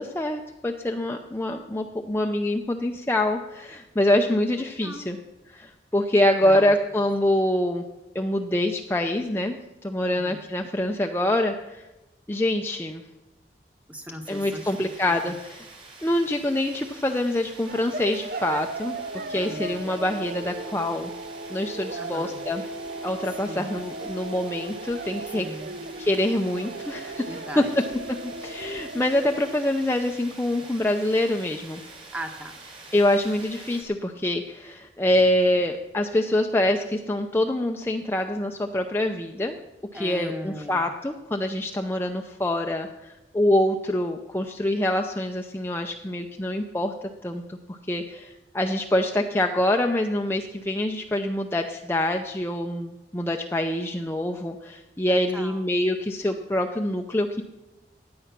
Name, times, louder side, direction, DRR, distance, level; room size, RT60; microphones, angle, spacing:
voice 1, 0.0-5.2 5.5-7.8 8.1-11.9 12.3-13.0 14.3-15.7 16.0-19.0 19.3-21.1 21.5-22.6 23.0-25.5 26.0-27.3 27.6-27.7 28.4-31.8 32.9-39.6 39.9-46.9 47.2-57.4, left 1 dB, 15° left, 3 dB, 0.6 m, -25 dB
voice 2, 4.8-5.1 6.4-6.7 10.0-10.4 13.9-14.9 15.2-15.4 19.3-19.7 21.9-22.4 23.4-23.7 25.3-25.8 27.3-27.7 32.1-32.6 39.9-40.8 55.1-55.6, equal, 10° right, 5 dB, 1.2 m, -38 dB
sound 1, 14.2-33.8, right 3 dB, 30° right, 2.6 m, -46 dB
sound 2, 17.7-29.6, right 3 dB, 50° right, 0.5 m, -36 dB
16.0 x 9.5 x 5.9 m, 1.0 s
head